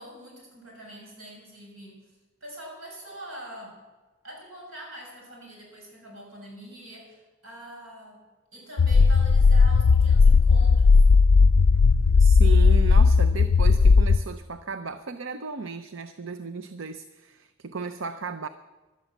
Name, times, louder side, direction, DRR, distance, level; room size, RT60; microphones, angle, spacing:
voice 1, 0.0-3.8 4.2-8.2 8.5-11.1, right 1 dB, 85° right, 0 dB, 6.5 m, -44 dB
sound 1, 8.8-14.2, left 4 dB, 70° left, 0.4 m, -17 dB
voice 2, 12.2-18.5, right 5 dB, 65° right, 11 dB, 0.6 m, -35 dB
16.0 x 12.0 x 7.3 m, 1.2 s
head